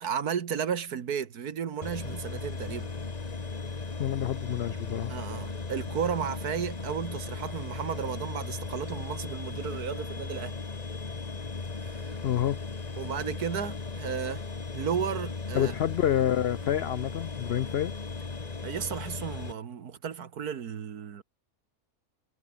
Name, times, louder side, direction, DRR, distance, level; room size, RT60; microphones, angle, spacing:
voice 1, 0.0-2.9 5.1-10.6 11.8-12.1 13.0-14.4 14.7-15.8 18.6-21.2, right 8 dB, 80° right, 1.9 m, -33 dB
sound 1, 1.8-19.5, left 4 dB, 25° left, 1.5 m, -37 dB
voice 2, 4.0-5.1 12.2-12.6 15.5-17.9, left 11 dB, 75° left, 0.5 m, -28 dB
omnidirectional pair, 1.6 m